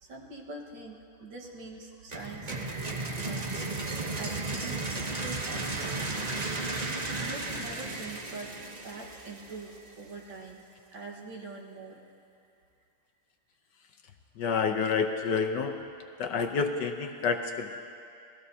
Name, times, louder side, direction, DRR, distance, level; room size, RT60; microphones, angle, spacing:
voice 1, 0.0-3.4 4.2-6.0 7.2-8.6 8.8-10.6 10.9-12.0, right 3 dB, 60° right, -1 dB, 2.1 m, -44 dB
sound 1, 2.1-9.9, right 2 dB, 80° right, 0.3 m, -34 dB
voice 2, 14.4-15.8 16.2-17.8, left 5 dB, 65° left, 5 dB, 1.2 m, -28 dB
28.0 x 18.5 x 2.8 m, 2.5 s
omnidirectional pair, 2.4 m